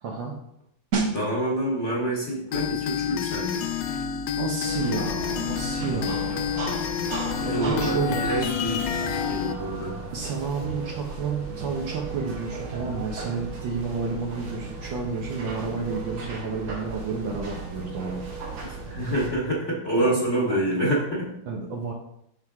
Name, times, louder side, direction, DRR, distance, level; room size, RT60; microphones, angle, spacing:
voice 1, 0.0-0.3 4.3-6.6 7.0-8.3 10.1-18.3 19.9-20.6 21.5-21.9, right 4 dB, 65° right, 0 dB, 1.6 m, -31 dB
sound 1, 0.9-11.4 11.7-12.0, right 4 dB, 45° right, 1.5 m, -38 dB
voice 2, 1.1-3.6 7.4-10.0 18.6-21.3, right 1 dB, 35° left, -4 dB, 2.2 m, -27 dB
sound 2, 2.5-9.5, left 8 dB, 75° left, 1.1 m, -29 dB
sound 3, 4.6-19.3, right 4 dB, 90° right, 2.2 m, -36 dB
7.7 x 6.2 x 3.6 m, 0.75 s
omnidirectional pair, 2.3 m